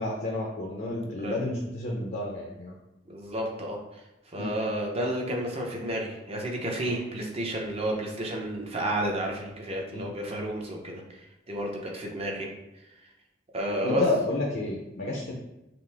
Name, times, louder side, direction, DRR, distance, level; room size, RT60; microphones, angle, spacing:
voice 1, 0.0-2.7 4.4-4.6 9.9-10.0 13.8-15.3, left 2 dB, 50° left, -1 dB, 0.6 m, -30 dB
voice 2, 3.1-12.5 13.5-14.0, right 1 dB, 30° right, 0 dB, 0.7 m, -31 dB
5.8 x 2.1 x 3.4 m, 0.95 s
head